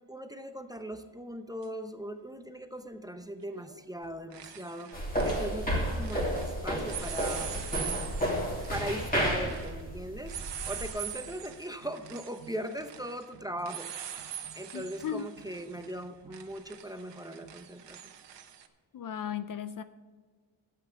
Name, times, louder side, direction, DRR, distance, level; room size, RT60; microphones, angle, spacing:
voice 1, 0.1-4.9 5.2-7.5 8.7-10.4 10.7-13.9 14.6-18.1, equal, 10° right, 8 dB, 0.6 m, -39 dB
sound 1, 1.6-1.7 3.5-3.8 4.0-6.5 6.8-18.7, right 9 dB, 60° right, 1.1 m, -43 dB
sound 2, 4.9-10.9, equal, 20° left, 2.7 m, -31 dB
voice 2, 14.7-15.3 18.9-19.8, left 8 dB, 45° left, 12 dB, 0.5 m, -36 dB
12.0 x 8.6 x 7.1 m, 1.5 s
wide cardioid pair, 155°, 47 cm